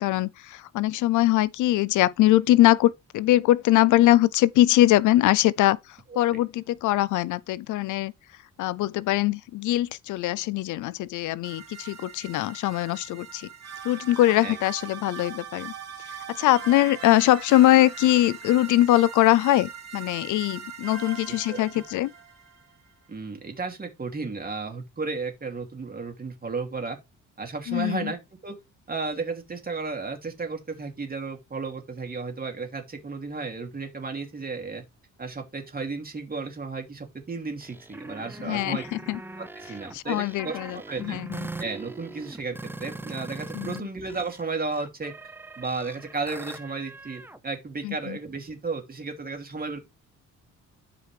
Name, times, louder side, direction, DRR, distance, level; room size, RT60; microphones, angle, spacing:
voice 1, 0.0-5.8 6.2-8.1 8.6-13.5 13.8-15.7 16.3-22.1 27.7-28.1 38.4-39.2 39.9-41.4 43.5-43.9 47.8-48.2, left 15 dB, 80° left, 0.5 m, -22 dB
sound 1, 11.4-22.7, right 7 dB, 60° right, 2.6 m, -41 dB
voice 2, 23.1-27.0 27.4-28.6 28.9-34.8 35.2-38.8 39.4-41.2 41.6-45.1 45.6-49.9, right 4 dB, 30° right, 2.7 m, -34 dB
sound 2, 37.6-43.8 44.1-47.4, right 2 dB, 5° right, 0.6 m, -41 dB
12.0 x 5.0 x 3.3 m
cardioid pair, 90°, 30 cm